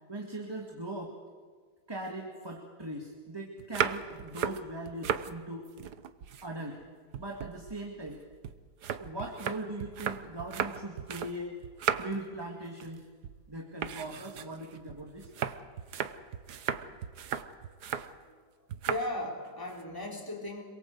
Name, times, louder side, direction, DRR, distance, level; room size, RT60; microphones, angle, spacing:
voice 1, 0.1-1.2 1.9-5.7 6.4-6.8 7.1-8.2 9.0-11.6 12.0-13.0 13.5-15.3, right 1 dB, 15° right, 1 dB, 2.1 m, -40 dB
sound 1, 3.6-5.3 5.7-6.8 7.1-11.4 11.6-12.3 12.6-13.0 13.2-13.4 13.8-18.1 18.7-19.1 19.4-19.8, right 8 dB, 65° right, 1.5 m, -36 dB
voice 2, 18.9-20.6, left 1 dB, 10° left, 1 dB, 3.8 m, -36 dB
26.5 x 23.0 x 8.1 m, 1.6 s
omnidirectional pair, 2.0 m